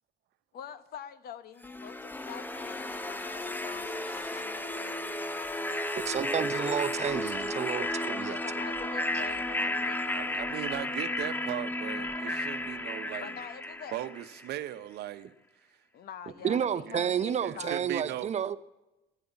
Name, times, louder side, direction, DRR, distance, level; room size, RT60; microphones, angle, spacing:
voice 1, 0.5-6.0 8.2-10.6 13.2-14.0 15.9-17.8, left 8 dB, 65° left, 1.1 m, -46 dB
sound 1, 1.6-14.6, left 1 dB, 10° left, 0.8 m, -33 dB
voice 2, 6.0-8.4 16.4-18.6, right 8 dB, 40° right, 0.8 m, -30 dB
voice 3, 10.1-13.4 13.9-15.3 16.6-17.1 17.4-18.4, right 13 dB, 75° right, 0.9 m, -38 dB
13.0 x 10.0 x 8.2 m
cardioid pair, 110°, 17 cm